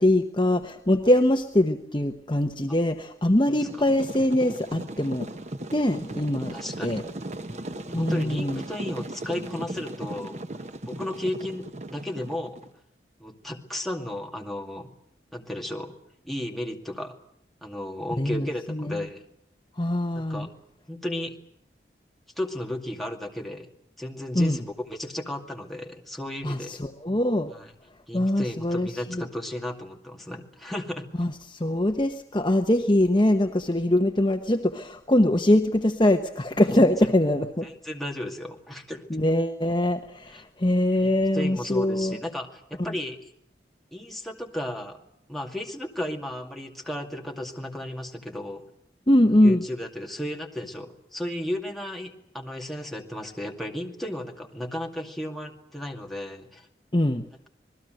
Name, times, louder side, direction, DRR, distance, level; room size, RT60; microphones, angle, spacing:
voice 1, 0.0-5.3 5.7-6.5 6.8-7.0 7.9-8.6 18.2-18.9 19.8-20.5 24.3-24.6 26.4-27.5 28.1-29.2 31.2-37.7 39.1-42.2 49.1-49.6 56.9-57.2, left 1 dB, 25° left, 4 dB, 1.0 m, -23 dB
sound 1, 3.6-12.7, right 1 dB, 40° right, 1.0 m, -37 dB
voice 2, 6.5-7.1 7.9-10.4 10.9-12.6 13.2-14.9 15.3-15.9 16.2-17.2 17.6-19.2 20.1-20.5 20.9-21.3 22.4-23.7 24.0-26.8 27.5-27.7 28.1-31.1 36.7-37.1 37.6-39.0 40.3-40.4 41.0-43.2 43.9-45.0 45.3-48.6 49.4-56.7, left 1 dB, ahead, 0 dB, 2.3 m, -34 dB
27.5 x 20.0 x 7.8 m, 0.70 s
head